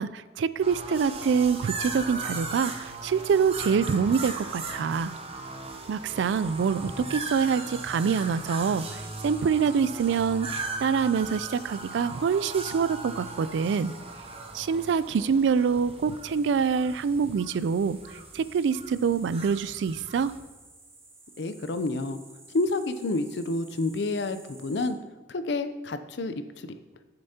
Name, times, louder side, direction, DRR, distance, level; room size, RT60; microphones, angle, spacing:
voice 1, 0.0-5.1 5.9-13.9 14.5-20.3, right 6 dB, 75° right, 16 dB, 0.3 m, -26 dB
sound 1, 0.6-20.4, right 3 dB, 30° right, 0.7 m, -38 dB
sound 2, 6.1-24.9, right 2 dB, 15° right, 1.1 m, -53 dB
voice 2, 21.4-22.2 22.5-25.0 25.3-26.3, left 2 dB, 65° left, 10 dB, 0.5 m, -29 dB
11.0 x 6.8 x 2.8 m, 1.2 s
head